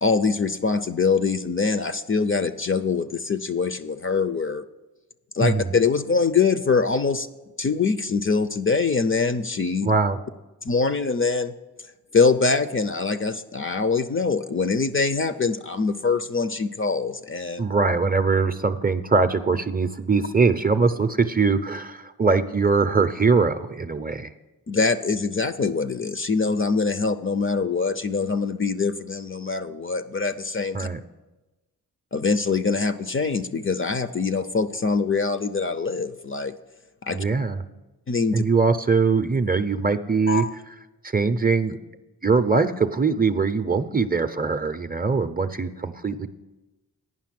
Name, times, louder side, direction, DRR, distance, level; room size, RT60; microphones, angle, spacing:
voice 1, 0.0-4.6 5.3-7.3 7.6-9.9 10.6-11.5 12.1-17.6 24.7-30.9 32.1-36.5 37.0-37.2 38.1-38.4 40.3-40.5, left 4 dB, 35° left, 10 dB, 0.5 m, -23 dB
voice 2, 5.4-5.7 9.8-10.2 17.6-24.3 30.7-31.0 37.1-37.6 38.3-40.4 41.0-41.8 42.2-46.3, right 4 dB, 25° right, 10 dB, 0.6 m, -22 dB
9.4 x 5.7 x 7.5 m, 1.1 s
cardioid pair, 60°, 38 cm